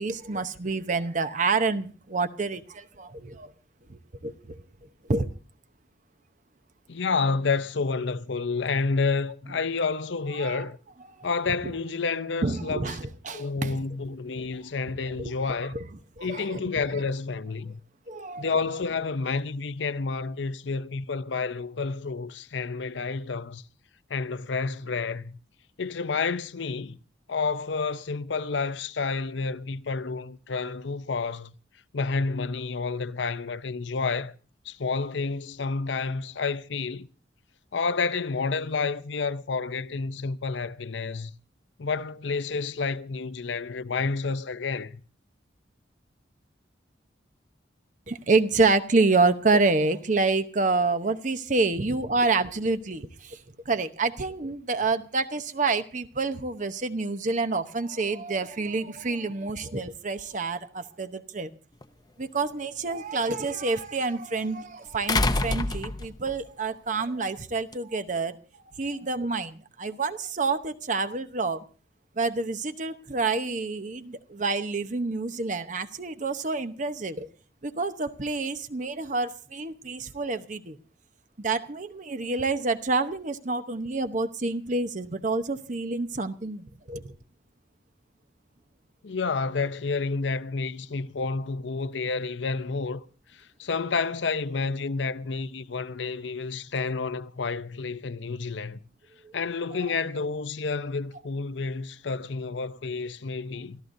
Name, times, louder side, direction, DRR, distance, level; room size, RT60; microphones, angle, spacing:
voice 1, 0.0-3.5 3.9-4.6 5.0-5.3 10.3-10.7 11.6-11.7 12.4-13.8 14.5-14.6 15.2-15.3 15.7-15.8 16.2-16.6 18.1-18.5 19.3-19.4 48.1-53.4 53.7-61.5 62.2-68.4 68.7-71.6 72.2-77.3 77.6-80.8 81.4-87.1 99.2-99.3 99.7-99.8, right 3 dB, 40° right, 0.9 m, -28 dB
voice 2, 6.9-10.8 11.2-12.9 13.3-15.8 16.2-17.8 18.4-23.6 24.1-25.4 25.8-27.0 27.3-31.5 31.9-34.3 34.7-37.1 37.7-41.3 41.8-45.0 89.0-93.0 93.3-98.8 99.3-103.8, left 4 dB, 75° left, 0.7 m, -29 dB
sound 1, 61.8-61.9 65.1-66.4 67.7-67.8, left 2 dB, 20° left, 0.7 m, -26 dB
28.0 x 14.0 x 2.7 m
head